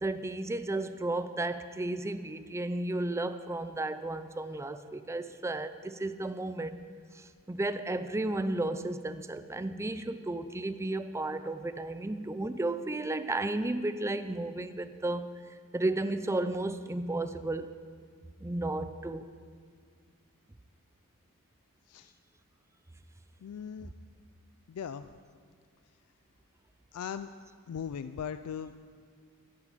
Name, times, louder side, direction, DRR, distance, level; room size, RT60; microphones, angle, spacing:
voice 1, 0.0-6.8 7.1-15.3 15.7-17.7 18.4-19.3, right 2 dB, 10° right, 11 dB, 0.4 m, -33 dB
voice 2, 23.4-23.9 24.7-25.1 26.9-27.3 27.7-28.7, left 7 dB, 75° left, 12 dB, 0.3 m, -38 dB
12.0 x 10.5 x 5.0 m, 2.1 s
head